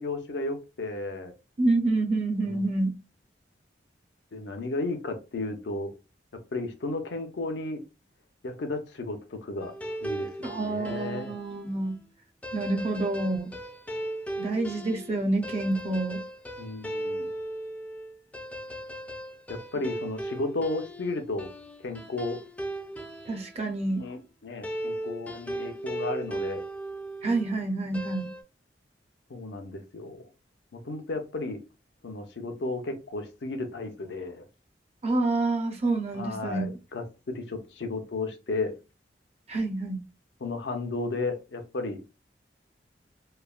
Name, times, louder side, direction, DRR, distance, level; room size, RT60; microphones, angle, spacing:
voice 1, 0.0-1.3 2.4-2.7 4.3-5.9 6.3-7.8 8.4-9.7 10.0-11.3 16.6-17.3 19.5-21.5 21.8-22.4 24.0-26.6 29.3-30.2 30.7-31.6 32.0-34.4 36.1-38.8 40.4-42.0, left 2 dB, 70° left, 0.6 m, -34 dB
voice 2, 1.6-2.9 10.4-12.0 12.5-13.5 14.4-16.2 23.3-24.0 27.2-28.3 35.0-36.7 39.5-40.0, right 2 dB, 35° right, 0.6 m, -28 dB
sound 1, 9.6-11.5 12.4-23.6 24.6-27.5 27.9-28.4, right 1 dB, 10° left, 0.4 m, -37 dB
3.1 x 2.1 x 2.3 m
head